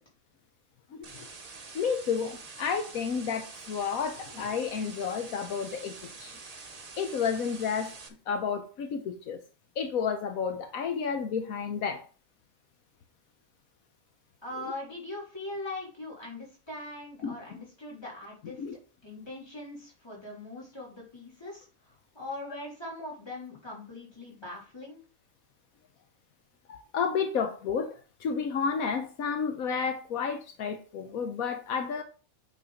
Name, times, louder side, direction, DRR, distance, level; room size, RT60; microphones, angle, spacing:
voice 1, 0.9-1.3 1.7-6.4 7.0-7.9 8.3-9.4 9.8-12.0 17.2-17.6 18.6-18.8 26.7-32.0, left 6 dB, 75° left, 7 dB, 1.3 m, -31 dB
sound 1, 1.0-8.1, right 4 dB, 35° right, 0.8 m, -46 dB
voice 2, 14.4-18.6 19.0-25.0, left 2 dB, 15° left, -4 dB, 3.3 m, -41 dB
8.6 x 4.1 x 5.1 m, 0.37 s
omnidirectional pair, 1.5 m